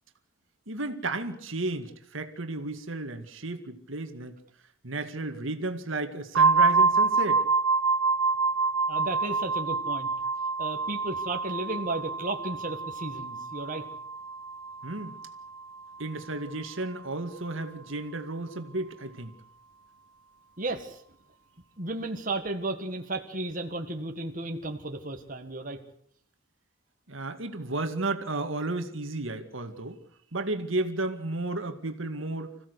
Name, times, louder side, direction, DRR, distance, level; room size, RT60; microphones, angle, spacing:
voice 1, 0.7-4.4 4.8-7.4 14.8-15.1 16.0-19.3 27.1-30.0 30.3-32.5, right 2 dB, 70° right, 7 dB, 2.1 m, -33 dB
sound 1, 6.3-16.0, right 4 dB, 90° right, 1.0 m, -27 dB
voice 2, 8.9-10.1 10.6-13.8 20.6-21.0 21.8-25.8, right 2 dB, 40° right, 4 dB, 1.9 m, -34 dB
26.5 x 16.0 x 8.2 m, 0.65 s
head